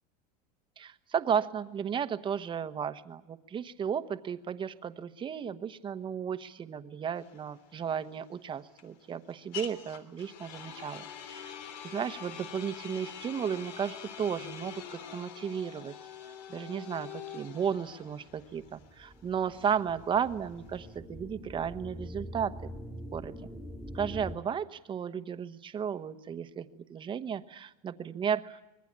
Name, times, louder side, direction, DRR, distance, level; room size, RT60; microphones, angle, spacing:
voice 1, 0.8-11.5 11.8-15.9 16.5-22.7 23.1-23.4 23.9-28.6, right 7 dB, 25° right, 11 dB, 1.1 m, -34 dB
sound 1, 7.2-21.0, left 9 dB, 90° left, 3.2 m, -45 dB
sound 2, 18.2-24.4, equal, 5° left, 1.9 m, -44 dB
25.5 x 21.0 x 8.7 m, 0.96 s
supercardioid pair, 140°, 20 cm